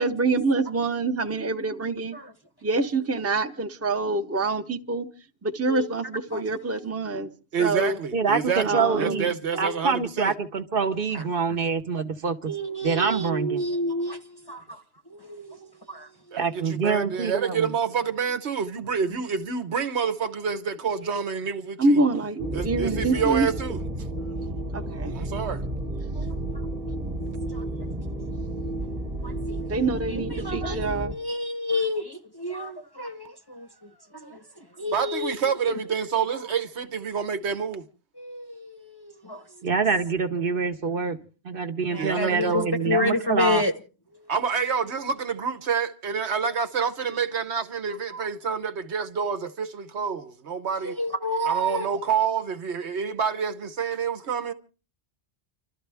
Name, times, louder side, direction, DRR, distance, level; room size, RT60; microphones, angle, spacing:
voice 1, 0.0-2.2 2.6-5.1 5.4-7.3 7.6-8.0 8.6-9.3 21.8-23.5 24.7-25.1 29.7-31.1, right 3 dB, 15° right, 0.7 m, -25 dB
voice 2, 7.5-10.3 16.3-22.0 22.5-24.0 25.0-25.6 34.9-37.8 41.9-42.7 44.3-51.0 51.4-54.5, right 6 dB, 75° right, 1.3 m, -28 dB
voice 3, 8.1-12.5 12.8-13.6 16.4-17.7 39.6-41.2 41.4-43.6, right 5 dB, 55° right, 1.1 m, -26 dB
voice 4, 12.5-14.2 14.5-14.6 15.3-15.6 15.9-16.1 30.1-33.3 33.5-33.7 34.2-34.3 34.8-35.3 38.2-38.7 39.3-39.4 41.9-43.7 51.0-51.9, left 1 dB, 25° left, 0.7 m, -28 dB
sound 1, 22.4-31.1, right 1 dB, 35° right, 1.5 m, -32 dB
30.0 x 13.0 x 3.4 m
omnidirectional pair, 1.1 m